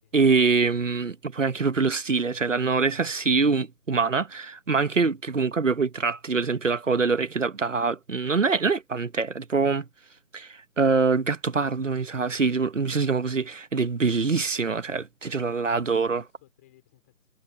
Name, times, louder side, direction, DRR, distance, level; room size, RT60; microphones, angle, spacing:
voice 1, 0.1-9.9 10.3-16.2, right 4 dB, 50° right, 1.3 m, -24 dB
voice 2, 15.4-17.3, left 16 dB, 10° left, 5.0 m, -59 dB
figure-of-eight pair, 175°, 47 cm